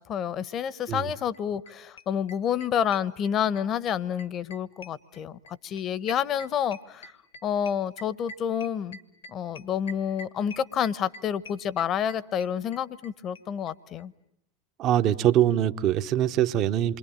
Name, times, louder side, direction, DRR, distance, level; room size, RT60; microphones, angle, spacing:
voice 1, 0.0-7.1 7.4-9.0 9.3-14.1, left 8 dB, 40° left, 1.0 m, -29 dB
sound 1, 1.3-1.4 1.7-1.8 2.0-3.6 3.9-13.1 13.3-13.4 13.7-13.8 14.0-14.1, left 1 dB, 80° left, 1.9 m, -45 dB
voice 2, 14.8-17.0, right 11 dB, 45° right, 1.0 m, -23 dB
28.5 x 23.0 x 8.9 m
hypercardioid pair, 85°, 0 cm